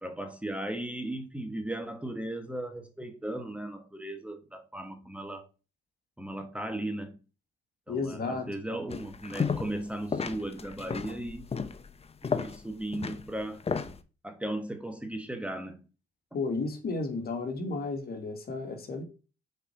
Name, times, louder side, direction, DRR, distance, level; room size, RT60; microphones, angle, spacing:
voice 1, 0.0-5.5 6.2-7.2 7.9-11.5 12.2-13.6 14.2-15.8, right 1 dB, 5° right, 1.4 m, -36 dB
voice 2, 7.9-8.5 16.3-19.0, left 3 dB, 50° left, 2.3 m, -33 dB
sound 1, 8.9-9.8 10.1-14.0, left 5 dB, 30° left, 1.0 m, -33 dB
6.6 x 4.8 x 6.0 m
cardioid pair, 90°, 20 cm